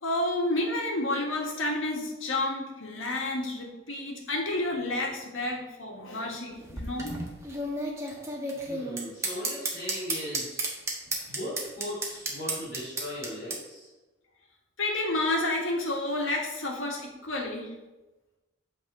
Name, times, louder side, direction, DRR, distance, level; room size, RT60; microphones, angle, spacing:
voice 1, 0.0-7.2 14.8-17.7, left 2 dB, 90° left, 0 dB, 1.8 m, -30 dB
sound 1, 6.5-13.6, right 2 dB, 15° right, 1.3 m, -32 dB
voice 2, 8.5-10.6 11.3-13.9, left 1 dB, 45° left, -7 dB, 3.1 m, -38 dB
8.5 x 4.2 x 6.0 m, 1.1 s
head